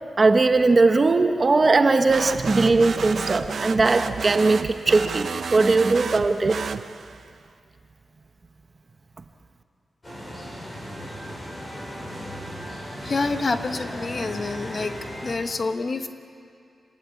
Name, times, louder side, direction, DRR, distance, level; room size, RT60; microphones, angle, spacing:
voice 1, 0.2-6.6, right 3 dB, 30° right, 7 dB, 1.0 m, -19 dB
sound 1, 2.1-7.3, right 5 dB, 55° right, 0.7 m, -31 dB
sound 2, 10.0-15.3, equal, 20° left, 6.7 m, -36 dB
voice 2, 13.0-14.9 15.2-16.1, left 3 dB, 40° left, 7 dB, 1.2 m, -27 dB
27.0 x 20.5 x 8.6 m, 2.4 s
wide cardioid pair, 160°, 0 cm